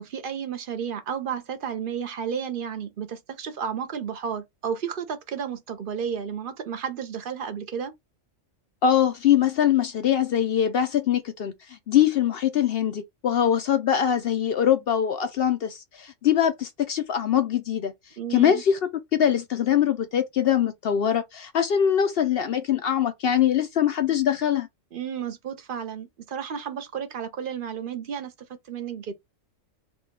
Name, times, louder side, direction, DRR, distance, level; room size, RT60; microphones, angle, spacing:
voice 1, 0.0-7.9 18.2-18.6 24.9-28.3 28.7-29.1, right 7 dB, 50° right, 0.8 m, -32 dB
voice 2, 8.8-17.9 18.3-18.8 19.2-24.7, left 9 dB, 60° left, 0.6 m, -23 dB
3.8 x 2.3 x 3.6 m
omnidirectional pair, 1.3 m